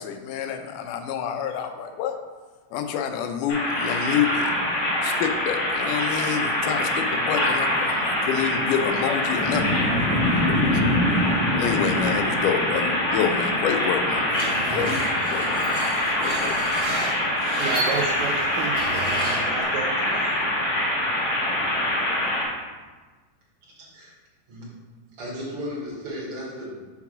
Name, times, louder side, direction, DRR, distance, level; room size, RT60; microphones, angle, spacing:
voice 1, 0.0-2.2 2.7-4.5 5.0-11.0 11.5-15.0 15.3-15.9 16.2-16.6, left 8 dB, 80° left, 6 dB, 2.1 m, -28 dB
sound 1, 3.5-22.4, left 1 dB, 40° left, 1.0 m, -24 dB
Screech, 14.4-19.6, right 2 dB, 35° right, 2.2 m, -32 dB
voice 2, 17.6-20.3, right 6 dB, 80° right, -1 dB, 1.6 m, -32 dB
voice 3, 23.6-24.1 24.5-24.6 25.2-26.8, equal, 50° right, -6 dB, 2.5 m, -35 dB
5.9 x 3.6 x 5.9 m, 1.3 s
omnidirectional pair, 3.7 m